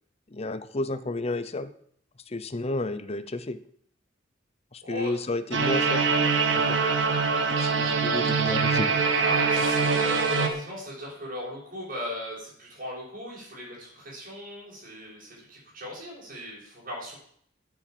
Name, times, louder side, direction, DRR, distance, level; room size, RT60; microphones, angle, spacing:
voice 1, 0.3-1.7 2.3-3.6 4.7-6.0 6.5-6.8 7.6-8.9, left 2 dB, 35° left, 12 dB, 0.7 m, -31 dB
voice 2, 4.8-5.1 9.1-17.2, equal, 45° right, -8 dB, 5.8 m, -38 dB
sound 1, 5.5-10.5, right 4 dB, 75° right, 1.7 m, -23 dB
9.0 x 8.5 x 7.7 m, 0.63 s
head